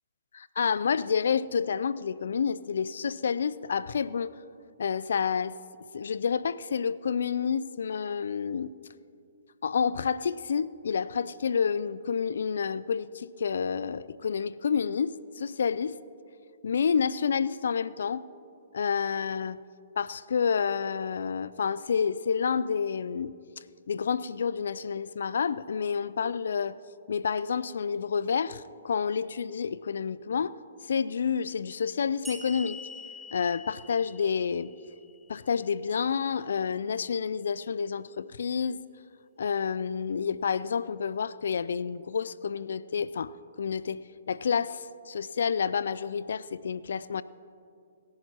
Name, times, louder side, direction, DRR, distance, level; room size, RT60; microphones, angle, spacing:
voice 1, 0.3-4.4 4.8-5.6 5.9-8.7 9.6-16.0 16.6-18.2 18.7-19.6 20.0-23.3 23.9-26.8 27.1-30.6 30.9-32.8 33.3-34.7 35.3-38.8 39.4-43.3 43.6-47.2, left 6 dB, 70° left, 18 dB, 0.4 m, -29 dB
sound 1, 32.2-35.6, left 3 dB, 5° right, 1.0 m, -45 dB
27.0 x 11.5 x 2.9 m, 2.5 s
figure-of-eight pair, 130°, 0 cm